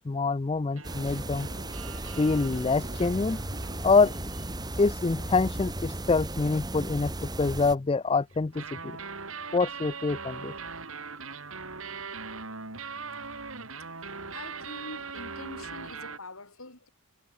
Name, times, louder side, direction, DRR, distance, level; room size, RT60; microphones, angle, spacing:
voice 1, 0.1-1.5 2.2-3.4 3.8-4.2 4.8-9.0 9.5-10.5, left 4 dB, 25° left, 0.4 m, -26 dB
sound 1, 0.7-6.2 8.3-16.2, right 4 dB, 65° right, 4.5 m, -41 dB
sound 2, 0.8-7.8, right 1 dB, 20° right, 2.3 m, -35 dB
voice 2, 14.3-16.9, left 2 dB, 70° left, 7.3 m, -44 dB
head